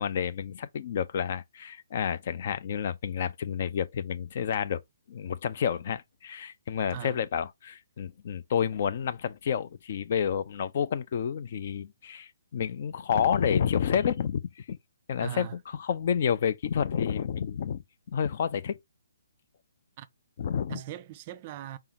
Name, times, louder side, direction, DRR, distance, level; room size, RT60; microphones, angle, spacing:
voice 1, 0.0-4.8 5.1-14.8 15.1-15.5 15.8-17.8 18.1-18.8 20.4-20.8, left 8 dB, 40° left, 0.4 m, -29 dB
voice 2, 15.2-15.6 20.0-20.1 20.7-21.8, right 11 dB, 30° right, 0.4 m, -39 dB
4.3 x 3.7 x 2.8 m
figure-of-eight pair, 130°, 0 cm